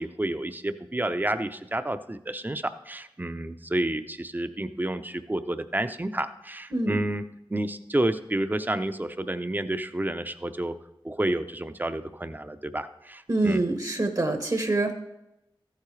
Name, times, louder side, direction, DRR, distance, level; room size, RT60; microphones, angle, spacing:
voice 1, 0.0-7.2 7.5-10.8 11.0-13.6, right 1 dB, 20° right, 10 dB, 0.6 m, -30 dB
voice 2, 13.3-14.9, right 2 dB, 45° right, 6 dB, 1.0 m, -25 dB
14.5 x 8.4 x 3.3 m, 0.90 s
wide cardioid pair, 60°, 9 cm